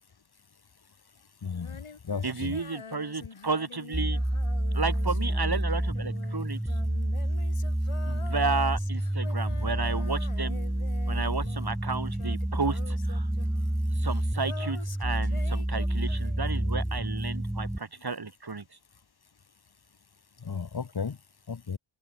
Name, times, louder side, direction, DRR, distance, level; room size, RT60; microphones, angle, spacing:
voice 1, 1.4-1.8 2.0-2.6 20.4-21.2 21.5-21.8, left 5 dB, 50° left, 1.1 m, -34 dB
Female singing, 1.5-11.9 12.1-16.6, left 5 dB, 85° left, 2.8 m, -46 dB
voice 2, 2.2-4.2 4.7-6.6 8.1-10.6 11.1-13.3 14.0-18.6, right 4 dB, 50° right, 2.1 m, -32 dB
sound 1, 3.9-17.8, right 1 dB, 5° right, 0.7 m, -29 dB
open air
wide cardioid pair, 70°, 50 cm